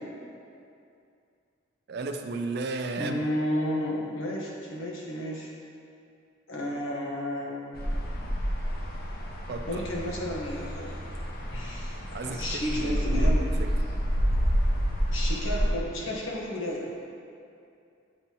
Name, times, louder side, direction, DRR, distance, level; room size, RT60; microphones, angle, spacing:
voice 1, 1.9-3.3 9.5-9.8 12.1-13.8, right 3 dB, 55° right, 5 dB, 0.4 m, -34 dB
voice 2, 3.0-5.5 6.5-7.8 9.7-10.9 11.5-13.4 15.1-16.9, left 1 dB, 85° left, -3 dB, 1.2 m, -32 dB
sound 1, 7.7-15.7, equal, 50° left, 0.8 m, -28 dB
7.9 x 5.4 x 2.9 m, 2.5 s
head